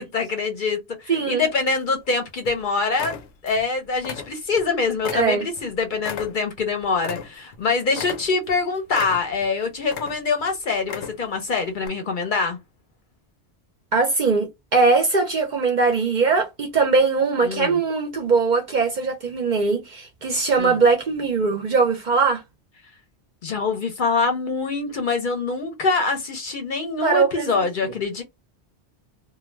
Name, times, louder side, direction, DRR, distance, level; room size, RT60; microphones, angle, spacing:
voice 1, 0.0-12.6 17.4-17.8 20.6-20.8 23.4-28.2, left 4 dB, 55° left, 0.7 m, -24 dB
voice 2, 1.1-1.4 5.1-5.5 13.9-22.4 27.0-27.5 27.8-27.9, right 4 dB, 50° right, 0.6 m, -21 dB
sound 1, 1.4-2.1 2.4-2.6 2.9-3.7 4.0-4.7 5.0-7.6 7.9-8.6 8.9-9.5 9.8-10.4 10.8-11.4 11.8-11.9, left 7 dB, 80° left, 0.9 m, -35 dB
2.3 x 2.1 x 3.1 m
omnidirectional pair, 1.2 m